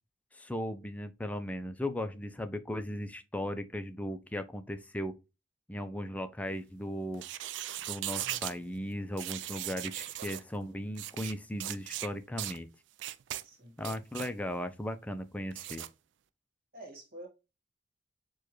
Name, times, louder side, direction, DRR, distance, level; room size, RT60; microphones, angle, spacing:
voice 1, 0.3-5.1 5.7-7.3 7.9-12.7 13.8-15.8, equal, 10° left, 0.3 m, -37 dB
sound 1, 7.1-8.6 9.2-10.4 10.9-11.3 11.6-12.1 12.4-12.6 13.0-13.4 13.8-14.3 15.5-15.9, right 13 dB, 70° right, 0.3 m, -38 dB
voice 2, 13.4-13.8 16.7-17.3, right 1 dB, 50° right, 1.7 m, -48 dB
6.7 x 2.3 x 3.0 m
head